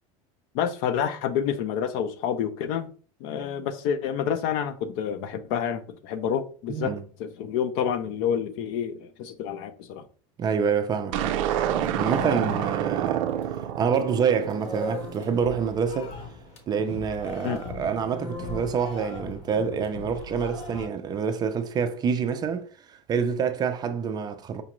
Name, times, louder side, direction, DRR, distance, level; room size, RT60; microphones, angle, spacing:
voice 1, 0.5-2.9 3.2-6.9 7.2-10.0 17.4-17.6, left 8 dB, 70° left, 0.5 m, -28 dB
voice 2, 6.7-7.0 10.4-11.4 12.0-13.3 13.8-16.1 16.7-24.6, right 6 dB, 25° right, 0.4 m, -27 dB
sound 1, 11.1-13.7 14.0-20.9, left 2 dB, 40° left, 0.8 m, -39 dB
sound 2, 11.1-15.5, right 10 dB, 90° right, 0.4 m, -28 dB
5.0 x 2.4 x 2.9 m
cardioid pair, 145°, 16 cm